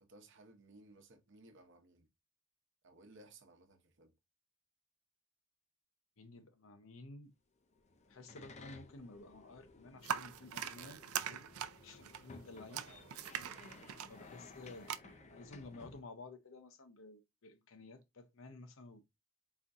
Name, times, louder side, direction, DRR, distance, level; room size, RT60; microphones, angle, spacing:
voice 1, 0.0-2.1 2.8-4.1 12.7-13.2 13.4-13.9 15.0-15.3, right 2 dB, 55° right, 0.9 m, -61 dB
voice 2, 6.2-7.3 8.1-11.5 11.8-12.8 14.1-15.0 15.3-19.0, left 2 dB, 65° left, 0.7 m, -53 dB
sound 1, 7.7-16.0, left 3 dB, 30° left, 0.5 m, -57 dB
sound 2, 10.0-15.0, right 9 dB, 85° right, 0.4 m, -42 dB
4.3 x 2.6 x 3.5 m
head